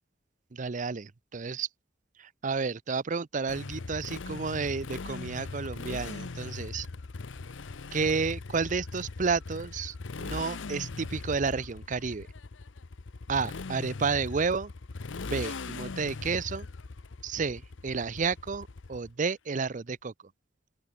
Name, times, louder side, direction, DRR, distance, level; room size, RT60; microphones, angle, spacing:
voice 1, 0.5-1.7 2.2-6.9 7.9-12.3 13.3-14.7 15.2-16.7 17.2-20.1, right 5 dB, 40° right, 0.6 m, -31 dB
Motorcycle, 3.5-19.3, left 3 dB, 80° left, 0.8 m, -40 dB
open air
head